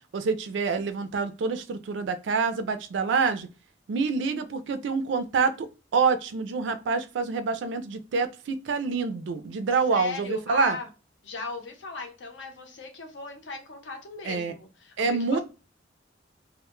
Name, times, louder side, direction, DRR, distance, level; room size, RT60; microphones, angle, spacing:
voice 1, 0.1-3.5 3.9-10.8 14.2-14.5 15.0-15.4, right 4 dB, 70° right, 0.4 m, -27 dB
voice 2, 9.9-10.9 11.2-15.4, left 3 dB, 70° left, 0.7 m, -37 dB
2.1 x 2.1 x 2.9 m
head